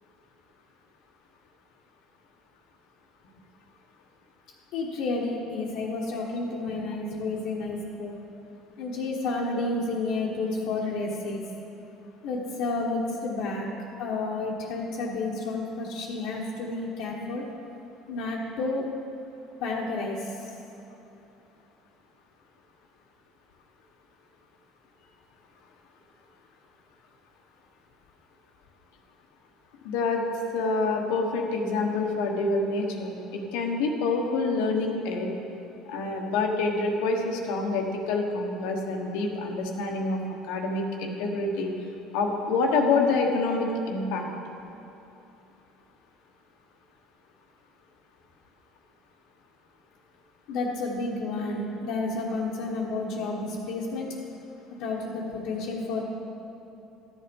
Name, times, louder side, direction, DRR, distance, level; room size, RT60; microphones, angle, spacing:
voice 1, 4.7-8.2 8.8-11.4 12.2-13.7 14.0-17.5 18.1-18.8 19.6-20.5 50.5-54.1 54.8-56.0, left 3 dB, 70° left, -5 dB, 1.3 m, -31 dB
voice 2, 29.8-30.2 30.5-35.3 35.9-40.2 40.5-41.7 42.1-44.2, left 3 dB, 90° left, 2 dB, 1.3 m, -27 dB
13.0 x 7.4 x 5.3 m, 2.9 s
cardioid pair, 125°, 0 cm